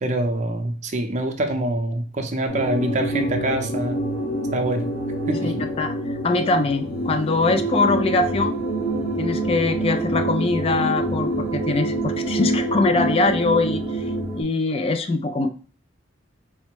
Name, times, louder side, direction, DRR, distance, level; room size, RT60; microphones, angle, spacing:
voice 1, 0.0-4.0 4.5-4.9 5.3-5.6, right 1 dB, 40° right, 6 dB, 0.5 m, -25 dB
sound 1, 2.5-14.4, right 1 dB, 50° left, 1.3 m, -26 dB
voice 2, 5.4-8.6 9.2-14.0 14.3-15.5, left 3 dB, 30° left, 8 dB, 0.3 m, -22 dB
4.3 x 2.1 x 4.4 m, 0.39 s
head